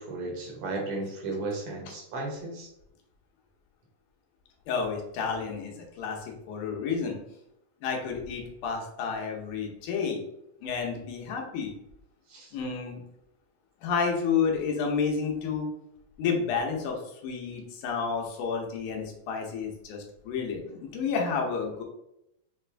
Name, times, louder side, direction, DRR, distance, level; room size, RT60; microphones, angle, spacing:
voice 1, 0.0-2.7 12.3-12.5, right 2 dB, 65° right, 0 dB, 2.1 m, -34 dB
voice 2, 4.7-7.2 7.8-10.2 10.6-11.7 12.5-13.0 13.8-15.7 16.2-21.8, left 5 dB, 85° left, 0 dB, 2.4 m, -30 dB
6.0 x 2.5 x 3.3 m, 0.81 s
omnidirectional pair, 3.5 m